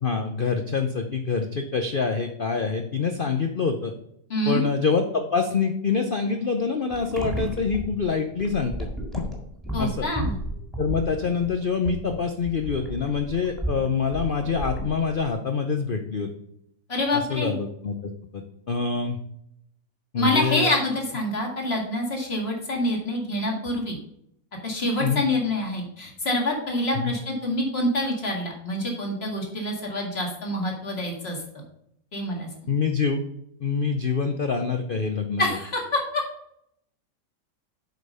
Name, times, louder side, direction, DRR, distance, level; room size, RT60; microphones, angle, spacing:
voice 1, 0.0-3.9 4.4-8.7 9.1-9.3 9.8-10.1 10.8-16.3 17.1-19.2 20.1-20.7 25.0-25.2 26.9-27.1 32.7-33.2 33.6-35.4, left 5 dB, 75° left, 6 dB, 0.4 m, -26 dB
voice 2, 4.3-4.6 9.7-10.4 16.9-17.6 20.2-24.0 24.6-31.4 32.1-32.8 35.4-36.2, left 1 dB, 35° left, 0 dB, 2.1 m, -26 dB
sound 1, 6.9-15.3, right 1 dB, ahead, 1.8 m, -33 dB
7.8 x 5.2 x 5.4 m, 0.73 s
omnidirectional pair, 1.9 m